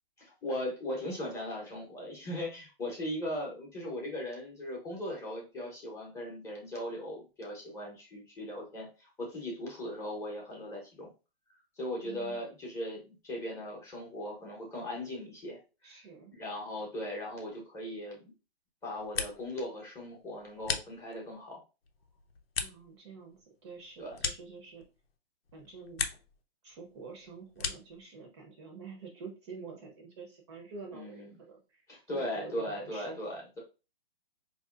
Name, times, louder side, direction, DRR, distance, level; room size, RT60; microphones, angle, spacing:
voice 1, 0.2-11.1 11.8-15.9 16.4-18.3 18.8-21.6 24.0-24.2 30.9-31.3 31.9-33.6, left 1 dB, 10° left, -3 dB, 0.8 m, -38 dB
voice 2, 12.0-12.4 15.8-16.3 22.6-24.8 25.5-26.1 26.6-31.9 32.1-33.3, right 4 dB, 25° right, 2 dB, 0.6 m, -47 dB
sound 1, 18.8-19.7 20.0-21.4 21.8-25.1 25.5-26.4 26.7-28.0, left 6 dB, 75° left, 0.8 m, -39 dB
4.6 x 2.7 x 2.4 m, 0.31 s
hypercardioid pair, 145°, 31 cm